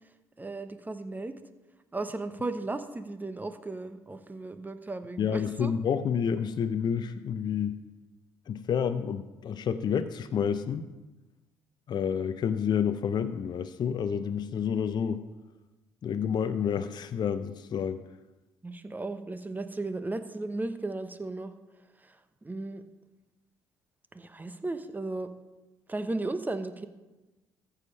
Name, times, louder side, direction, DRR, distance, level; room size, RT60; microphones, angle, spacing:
voice 1, 0.4-1.4 1.9-5.7 18.6-21.5 22.0-22.2 22.4-22.8 24.1-25.3 25.9-26.9, right 2 dB, 20° right, 10 dB, 0.9 m, -35 dB
voice 2, 5.2-7.8 8.5-10.9 11.9-15.2 16.0-18.0, left 7 dB, 45° left, 10 dB, 0.6 m, -29 dB
14.5 x 5.0 x 5.4 m, 1.1 s
hypercardioid pair, 55°, 10 cm